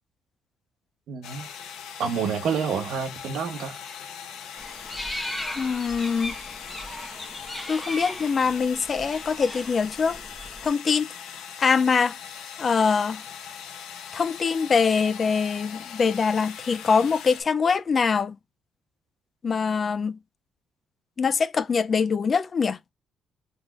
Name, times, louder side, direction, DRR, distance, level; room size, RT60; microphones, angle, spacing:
voice 1, 1.1-1.5 2.0-3.8, right 6 dB, 75° right, 0.9 m, -28 dB
sound 1, 1.2-17.4, left 7 dB, 85° left, 0.9 m, -40 dB
sound 2, 4.6-10.7, left 1 dB, 10° left, 1.1 m, -37 dB
voice 2, 5.6-6.4 7.7-10.2 10.6-11.1 11.6-12.2 12.6-13.2 14.1-18.4 19.4-20.2 21.2-22.8, left 5 dB, 40° left, 0.3 m, -23 dB
3.7 x 3.4 x 2.4 m
cardioid pair, 90°, 0 cm